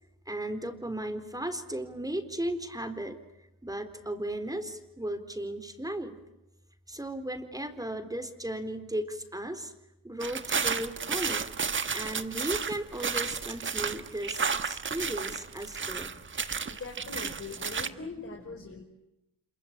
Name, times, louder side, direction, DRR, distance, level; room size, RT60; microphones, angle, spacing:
voice 1, 0.3-3.2 3.6-6.2 6.9-9.7 10.0-11.5 11.9-16.1, right 1 dB, 10° right, 8 dB, 4.1 m, -36 dB
sound 1, 10.2-17.9, right 5 dB, 35° right, 1.5 m, -32 dB
voice 2, 16.7-18.8, left 4 dB, 35° left, 0 dB, 5.0 m, -41 dB
27.0 x 24.0 x 8.9 m, 0.93 s
supercardioid pair, 60°, 36 cm